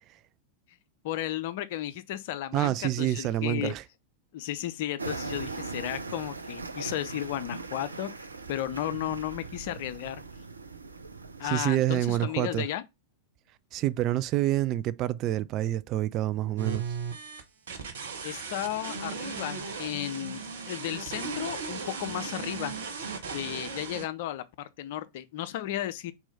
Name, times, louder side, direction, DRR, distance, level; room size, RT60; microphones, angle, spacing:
voice 1, 1.0-3.7 4.3-8.1 8.5-10.2 11.4-12.8 18.2-22.7 23.3-26.1, left 13 dB, 50° left, 0.7 m, -34 dB
voice 2, 2.5-3.8 11.4-12.7 13.7-17.0, right 14 dB, 35° right, 0.4 m, -27 dB
sound 1, 5.0-11.7, right 3 dB, 80° right, 0.6 m, -39 dB
sound 2, 16.6-24.1, right 5 dB, 60° right, 1.1 m, -37 dB
4.5 x 4.3 x 5.6 m
figure-of-eight pair, 90°, 0 cm